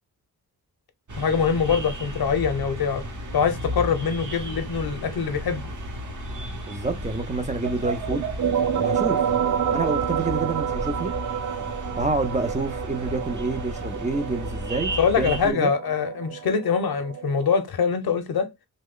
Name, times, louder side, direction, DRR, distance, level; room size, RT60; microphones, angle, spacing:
sound 1, 1.1-15.5, right 1 dB, 55° right, 0.9 m, -34 dB
voice 1, 1.2-3.0 3.3-5.6 15.0-18.5, left 6 dB, 75° left, 0.7 m, -24 dB
voice 2, 6.7-8.3 8.8-9.2 9.7-11.1 12.0-15.7, right 3 dB, 20° right, 0.4 m, -28 dB
sound 2, 8.1-17.5, right 8 dB, 75° right, 0.5 m, -28 dB
3.0 x 2.1 x 3.6 m
wide cardioid pair, 150°, 37 cm